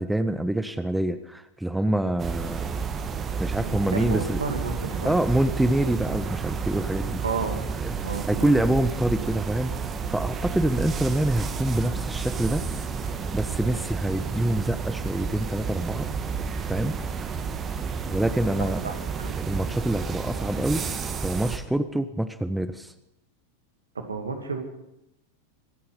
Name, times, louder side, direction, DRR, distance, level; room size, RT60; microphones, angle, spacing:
voice 1, 0.0-2.7 3.4-4.4 5.0-7.2 7.8-8.0 8.3-9.7 10.1-12.6 13.3-16.1 16.6-17.0 18.1-18.8 19.4-22.9, right 1 dB, 5° right, 11 dB, 0.8 m, -26 dB
sound 1, 2.2-21.6, right 5 dB, 25° right, 1.4 m, -31 dB
voice 2, 3.6-5.2 7.2-7.6 8.0-8.6 18.6-19.4 23.9-24.6, right 4 dB, 75° right, 4 dB, 2.3 m, -32 dB
24.5 x 8.8 x 5.5 m, 0.87 s
figure-of-eight pair, 90°, 0 cm